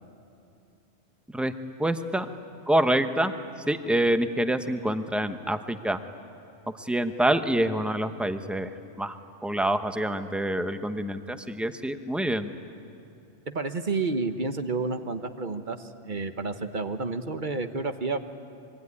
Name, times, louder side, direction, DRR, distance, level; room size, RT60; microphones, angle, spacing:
voice 1, 1.8-2.3 2.7-3.3 3.7-6.0 6.8-8.7 9.0-12.5, right 1 dB, ahead, 8 dB, 0.8 m, -26 dB
voice 2, 13.5-18.2, right 3 dB, 40° right, 8 dB, 1.2 m, -30 dB
25.0 x 23.5 x 9.7 m, 2.8 s
omnidirectional pair, 1.3 m